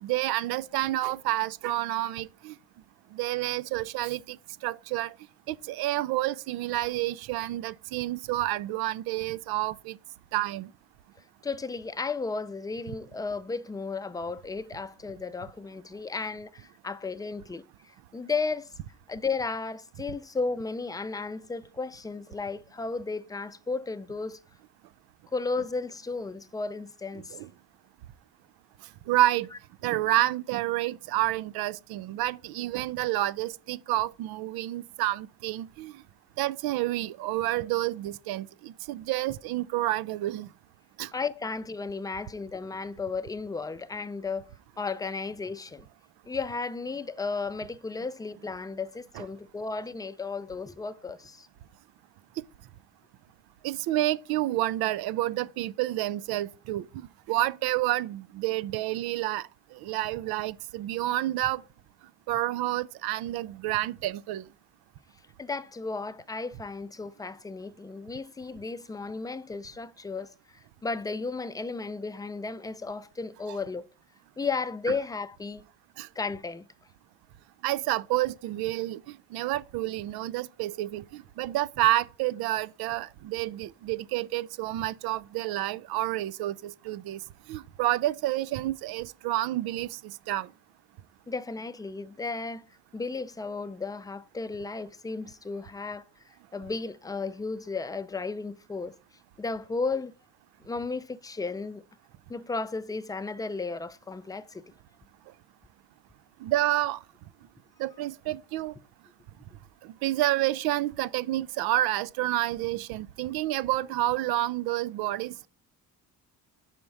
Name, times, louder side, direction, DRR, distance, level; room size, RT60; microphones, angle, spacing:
voice 1, 0.0-2.5 3.1-4.4 4.6-5.1 5.5-10.0 10.3-10.7 27.3-27.5 29.1-29.5 29.8-35.9 36.4-40.5 41.0-41.1 49.1-49.2 52.4-52.5 53.6-61.6 62.3-64.4 73.5-73.6 76.0-76.1 77.6-79.0 79.3-87.2 87.5-90.5 106.4-107.0 107.8-108.7 109.8-115.5, right 15 dB, 80° right, 0.5 m, -29 dB
voice 2, 11.4-17.6 18.1-18.7 19.1-24.4 25.3-27.4 41.1-44.5 44.8-45.9 46.3-51.5 65.4-70.3 70.8-73.9 74.4-75.6 76.2-76.7 91.3-92.7 92.9-96.0 96.5-98.9 99.4-100.1 100.6-101.8 102.3-104.6, left 4 dB, 10° left, 0.5 m, -34 dB
5.7 x 4.5 x 5.3 m
cardioid pair, 85°, 37 cm